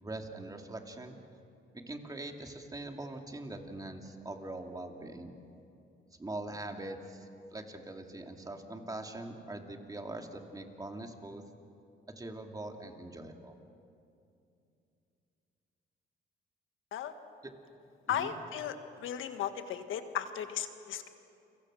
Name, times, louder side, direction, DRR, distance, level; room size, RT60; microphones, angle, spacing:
voice 1, 0.0-1.2 1.7-5.3 6.2-11.4 12.2-13.6 17.4-17.5 18.1-18.3, right 2 dB, 20° right, 3 dB, 2.7 m, -42 dB
voice 2, 18.1-18.8 19.0-21.1, left 9 dB, 80° left, 8 dB, 1.6 m, -35 dB
29.5 x 24.0 x 6.4 m, 2.6 s
cardioid pair, 90°, 20 cm